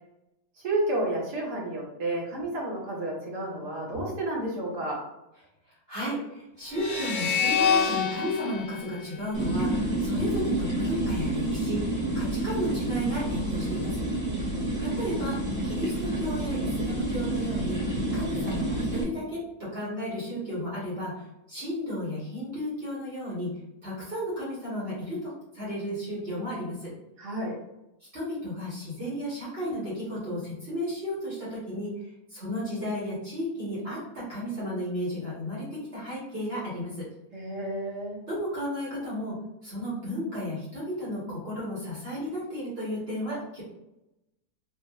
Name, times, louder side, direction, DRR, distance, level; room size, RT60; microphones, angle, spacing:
voice 1, 0.6-5.0 14.2-14.7 27.2-27.5 37.3-38.2, right 1 dB, 75° right, -4 dB, 1.8 m, -31 dB
voice 2, 5.9-11.8 12.1-13.9 14.8-15.4 15.6-17.8 18.1-23.5 23.8-26.9 28.1-31.9 32.3-37.0 38.3-39.3 39.6-43.6, equal, 40° right, -8 dB, 1.7 m, -33 dB
sound 1, 6.7-10.0, left 6 dB, 60° left, 1.0 m, -28 dB
sound 2, 9.3-19.0, right 1 dB, 15° right, 1.0 m, -29 dB
4.4 x 2.9 x 2.4 m, 0.90 s
omnidirectional pair, 1.7 m